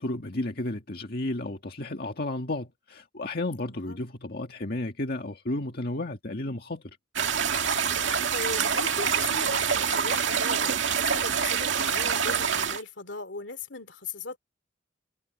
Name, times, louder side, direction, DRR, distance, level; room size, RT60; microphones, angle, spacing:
voice 1, 0.0-6.8, left 2 dB, 55° left, 1.9 m, -32 dB
voice 2, 3.6-4.0 7.8-8.0 8.3-14.4, left 3 dB, 70° left, 2.8 m, -38 dB
sound 1, 7.2-12.8, right 7 dB, 80° right, 2.1 m, -26 dB
head